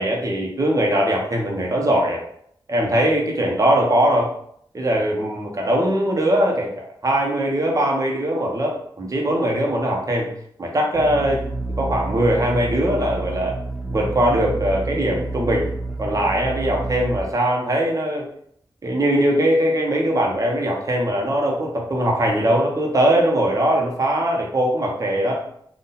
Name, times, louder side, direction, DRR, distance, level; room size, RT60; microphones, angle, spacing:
voice 1, 0.0-2.2 2.7-4.3 4.7-10.3 10.6-11.4 11.8-13.5 13.9-15.7 16.0-18.2 18.8-25.4, right 1 dB, 40° right, -1 dB, 1.0 m, -21 dB
sound 1, 10.9-17.2, right 2 dB, ahead, 0.9 m, -29 dB
4.1 x 2.6 x 4.0 m, 0.67 s
wide cardioid pair, 105°, 9 cm